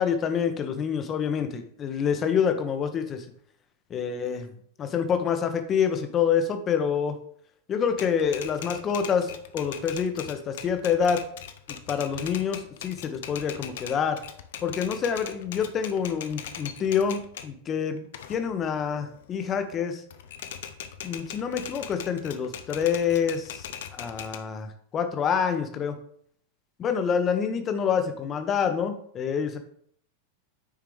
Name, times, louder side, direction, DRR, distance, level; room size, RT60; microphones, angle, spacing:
voice 1, 0.0-3.2 3.9-4.5 4.8-7.2 7.7-11.2 11.7-14.2 14.6-20.0 21.0-26.0 26.8-29.6, left 7 dB, 25° left, 7 dB, 1.0 m, -27 dB
Typewriter, 7.9-17.5 18.0-19.7 20.1-24.4, left 9 dB, 55° left, 0.6 m, -40 dB
9.3 x 4.8 x 3.3 m, 0.63 s
figure-of-eight pair, 90°, 0 cm